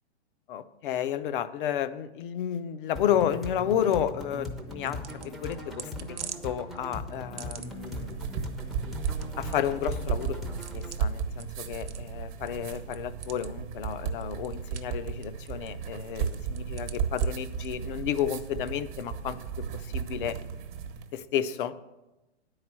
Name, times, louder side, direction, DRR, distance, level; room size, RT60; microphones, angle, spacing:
voice 1, 0.5-6.2 6.4-8.1 9.4-20.4 21.1-21.7, left 10 dB, 50° left, 13 dB, 0.6 m, -31 dB
sound 1, 2.9-10.9, left 1 dB, ahead, 0.6 m, -39 dB
sound 2, 4.1-19.3, right 7 dB, 85° right, 0.8 m, -48 dB
sound 3, 7.7-21.1, right 7 dB, 45° right, 1.2 m, -34 dB
9.4 x 4.8 x 7.4 m, 1.0 s
hypercardioid pair, 130°, 34 cm